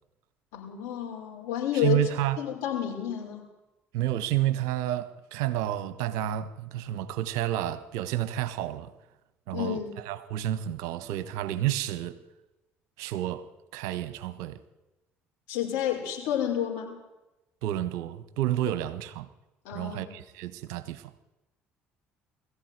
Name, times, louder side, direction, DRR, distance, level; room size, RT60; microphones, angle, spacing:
voice 1, 0.5-2.0 2.4-3.5 9.5-9.9 15.5-17.0 19.6-20.1, left 10 dB, 65° left, 6.1 m, -30 dB
voice 2, 1.7-2.4 3.9-8.9 9.5-12.2 13.0-13.5 13.7-14.6 17.6-19.3 19.7-21.1, right 13 dB, 70° right, 1.3 m, -30 dB
21.0 x 14.5 x 9.6 m
hypercardioid pair, 55°, 6 cm